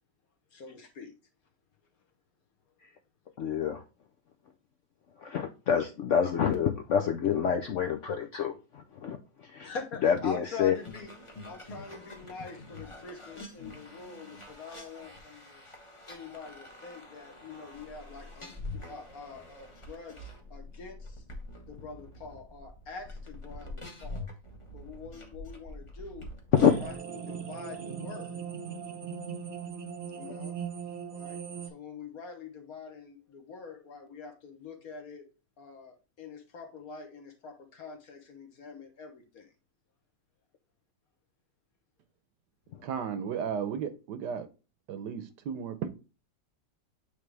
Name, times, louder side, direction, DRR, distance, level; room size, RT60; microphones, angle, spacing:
voice 1, 0.5-1.1 9.6-11.1 11.4-15.6 16.1-18.5 18.9-21.1 21.7-24.3 24.7-26.3 26.8-26.9 27.3-28.4 30.1-30.5 31.1-31.4 31.7-35.3 35.6-39.4, left 5 dB, 55° left, 1.5 m, -44 dB
voice 2, 3.4-3.8 5.2-9.2 9.5-9.7 10.0-10.7 26.6-26.8, left 8 dB, 90° left, 0.6 m, -27 dB
sound 1, 10.7-27.0, left 2 dB, 20° left, 1.0 m, -46 dB
sound 2, 26.5-31.7, right 7 dB, 50° right, 0.8 m, -39 dB
voice 3, 42.8-44.5 44.9-45.9, right 7 dB, 70° right, 1.3 m, -34 dB
8.6 x 3.3 x 3.3 m
omnidirectional pair, 2.1 m